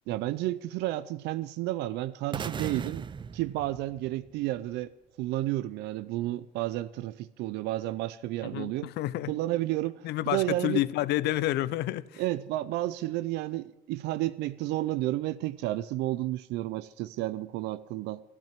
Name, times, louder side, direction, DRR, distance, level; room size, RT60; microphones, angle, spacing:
voice 1, 0.1-3.1 3.3-4.9 5.2-8.9 9.3-10.8 12.2-18.2, right 16 dB, 90° right, 0.5 m, -31 dB
sound 1, 2.3-4.4, right 6 dB, 30° right, 0.5 m, -37 dB
voice 2, 8.4-9.3 10.0-12.2, left 15 dB, 80° left, 0.6 m, -29 dB
13.5 x 12.0 x 7.5 m
cardioid pair, 110°, 17 cm